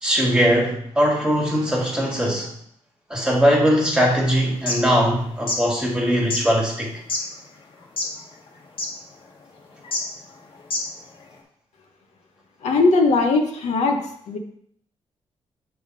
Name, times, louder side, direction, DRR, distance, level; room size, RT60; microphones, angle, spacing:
voice 1, 0.0-2.5 3.1-6.9, equal, 10° right, -1 dB, 1.7 m, -20 dB
sound 1, 4.5-4.8 5.3-5.6 6.3-6.4 7.1-7.2 7.8-8.2 8.5-8.6 8.8-8.9 9.8-10.0 10.6-11.0, left 2 dB, 50° left, 1.6 m, -25 dB
voice 2, 12.6-14.0 14.3-14.4, left 3 dB, 80° left, 3 dB, 1.0 m, -19 dB
7.0 x 3.6 x 5.3 m, 0.68 s
cardioid pair, 110°, 11 cm